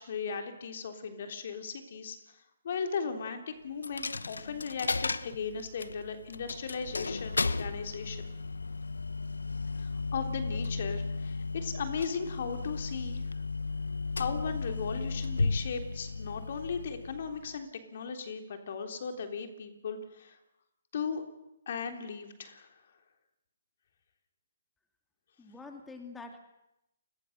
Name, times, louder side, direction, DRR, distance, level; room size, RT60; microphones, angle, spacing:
voice 1, 0.0-2.4 2.6-8.3 9.7-13.2 14.2-20.4 20.9-21.2 21.7-22.7, left 5 dB, 55° left, 6 dB, 3.4 m, -37 dB
Coin (dropping), 3.8-17.6, left 3 dB, 85° left, 1.0 m, -35 dB
voice 2, 25.4-26.4, left 3 dB, 10° left, 4 dB, 2.9 m, -45 dB
29.5 x 21.0 x 6.7 m, 0.87 s
hypercardioid pair, 140°, 0 cm